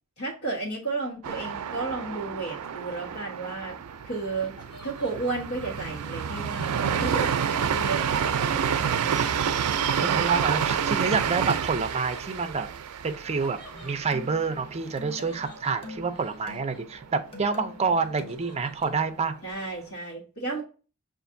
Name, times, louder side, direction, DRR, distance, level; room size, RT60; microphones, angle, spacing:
voice 1, 0.2-3.8 4.0-4.5 4.8-9.3 9.9-10.4 19.4-20.6, right 3 dB, 70° left, -7 dB, 1.3 m, -33 dB
sound 1, 1.2-15.0 15.3-15.4 15.8-16.3, right 7 dB, 85° right, 0.4 m, -29 dB
Laughter, 2.9-8.9 10.4-17.3 17.6-19.1, left 1 dB, 50° left, 1.8 m, -52 dB
voice 2, 8.1-8.8 10.0-12.7 13.0-19.3, right 4 dB, 30° right, 7 dB, 0.5 m, -28 dB
sound 2, 13.7-19.2, left 2 dB, 25° left, 1.0 m, -45 dB
6.9 x 2.5 x 2.6 m, 0.35 s
head